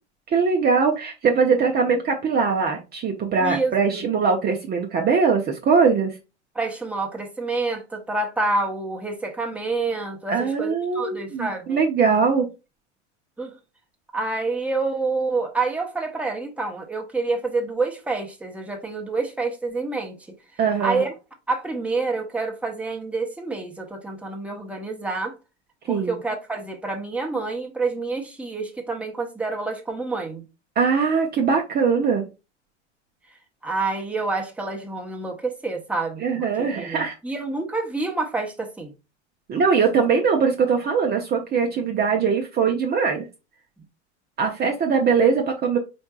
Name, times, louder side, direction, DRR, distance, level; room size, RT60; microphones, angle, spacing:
voice 1, 0.3-6.2 10.3-12.5 20.6-21.0 25.9-26.2 30.8-32.2 36.2-37.1 39.5-43.3 44.4-45.8, right 5 dB, 25° right, 0.9 m, -21 dB
voice 2, 3.4-4.0 6.5-11.8 13.4-13.5 14.1-20.2 20.8-21.1 21.5-25.4 25.9-30.4 33.6-38.9, right 3 dB, 5° right, 1.1 m, -28 dB
4.5 x 4.4 x 2.4 m
hypercardioid pair, 85°, 35 cm